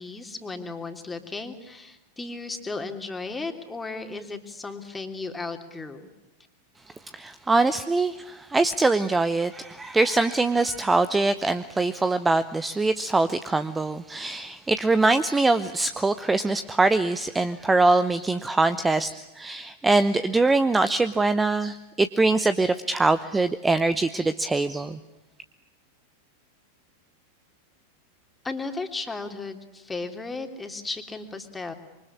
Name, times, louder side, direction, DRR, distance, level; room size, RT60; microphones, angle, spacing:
voice 1, 0.0-6.1 28.4-31.7, left 3 dB, 10° left, 5 dB, 3.1 m, -35 dB
voice 2, 7.1-25.0, right 3 dB, 10° right, 13 dB, 0.9 m, -23 dB
26.5 x 24.5 x 8.6 m, 0.98 s
figure-of-eight pair, 90°, 0 cm